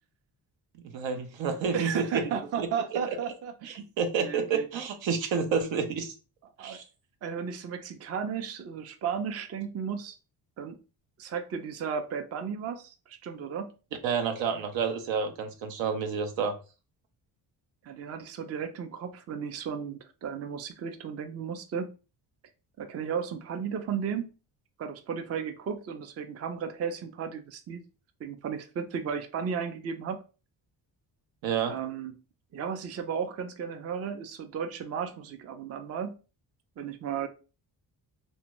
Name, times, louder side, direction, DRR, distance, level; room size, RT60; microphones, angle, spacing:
voice 1, 0.9-2.2 2.6-2.7 3.6-6.1 6.6-6.8 14.0-16.6 31.4-31.8, right 6 dB, 80° right, 0.6 m, -29 dB
voice 2, 1.7-3.7 4.2-4.7 6.6-6.8 7.2-10.2 10.6-10.8 11.2-13.7 17.8-21.9 22.8-24.3 24.8-27.8 28.2-30.2 31.7-32.1 32.5-36.2 36.8-37.3, right 7 dB, 35° right, 0.4 m, -34 dB
2.6 x 2.1 x 2.9 m
cardioid pair, 70°, 44 cm